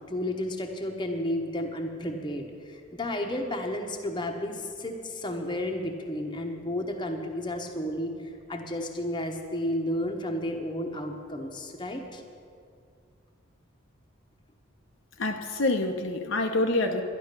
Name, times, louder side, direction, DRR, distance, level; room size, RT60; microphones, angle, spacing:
voice 1, 0.1-12.2, left 1 dB, 20° left, 3 dB, 1.1 m, -32 dB
voice 2, 15.2-17.0, left 2 dB, 65° left, 4 dB, 0.8 m, -26 dB
11.5 x 11.0 x 6.7 m, 2.3 s
head